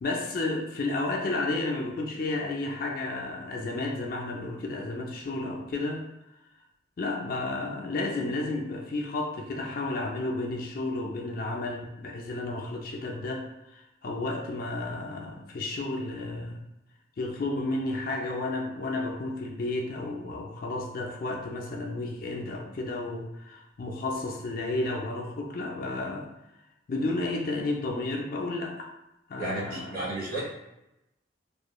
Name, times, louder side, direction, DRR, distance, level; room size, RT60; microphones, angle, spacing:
voice 1, 0.0-6.0 7.0-16.7 17.2-26.3 26.9-28.9 29.3-30.1, left 2 dB, 50° left, 0 dB, 0.4 m, -32 dB
voice 2, 29.4-30.4, right 2 dB, 50° right, -5 dB, 0.9 m, -32 dB
2.4 x 2.1 x 3.0 m, 0.92 s
head